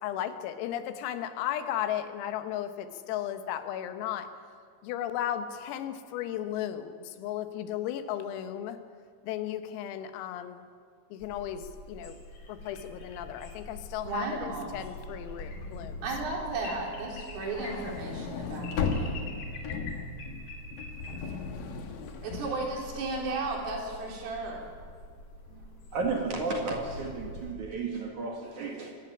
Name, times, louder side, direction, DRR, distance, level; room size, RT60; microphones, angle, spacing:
voice 1, 0.0-4.4 4.8-8.8 9.2-10.6 11.1-12.2 12.5-16.0, left 11 dB, 85° left, 9 dB, 3.9 m, -35 dB
sound 1, 11.2-27.5, left 2 dB, 40° left, 4.0 m, -45 dB
voice 2, 14.0-14.7 16.0-19.3 22.2-24.7, right 3 dB, 75° right, -1 dB, 6.5 m, -34 dB
sound 2, 17.4-23.7, left 4 dB, 60° left, 2.5 m, -36 dB
voice 3, 25.5-29.0, right 3 dB, 55° right, 2 dB, 2.3 m, -33 dB
24.5 x 14.5 x 10.0 m, 2.1 s
omnidirectional pair, 5.9 m